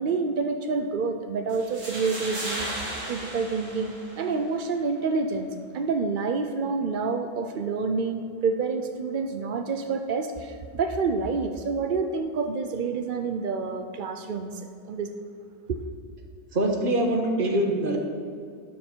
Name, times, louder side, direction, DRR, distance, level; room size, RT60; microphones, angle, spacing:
voice 1, 0.0-5.5 5.7-15.1 15.7-15.8, right 4 dB, 80° right, 7 dB, 0.4 m, -28 dB
sound 1, 1.5-4.5, right 1 dB, 50° right, 2.4 m, -35 dB
voice 2, 16.5-18.0, right 1 dB, 35° right, 2 dB, 1.5 m, -24 dB
12.5 x 9.6 x 4.5 m, 2.4 s
omnidirectional pair, 1.7 m